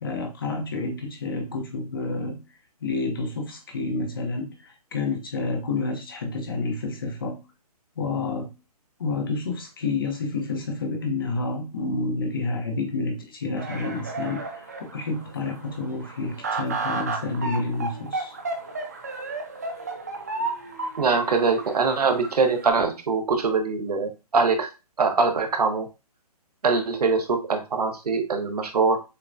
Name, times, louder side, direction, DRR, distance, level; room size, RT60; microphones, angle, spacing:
voice 1, 0.0-2.4 2.8-7.4 8.0-8.5 9.0-18.3, left 3 dB, 35° left, 0.8 m, -29 dB
sound 1, 13.6-22.7, right 3 dB, 25° right, 0.5 m, -33 dB
voice 2, 21.0-24.7 25.0-25.9 26.6-29.0, right 4 dB, 75° right, 1.1 m, -23 dB
6.6 x 2.2 x 2.6 m
hypercardioid pair, 180°, 20 cm